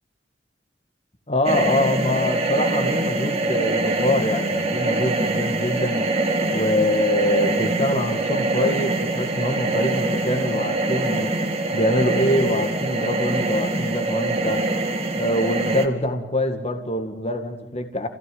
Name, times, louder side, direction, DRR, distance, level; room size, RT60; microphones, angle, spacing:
voice 1, 1.3-6.1 6.5-11.3 11.7-14.6 15.1-18.1, left 1 dB, 35° left, 6 dB, 2.1 m, -24 dB
sound 1, 1.4-15.9, right 2 dB, 35° right, 2.3 m, -24 dB
29.0 x 16.5 x 9.5 m, 1.1 s
head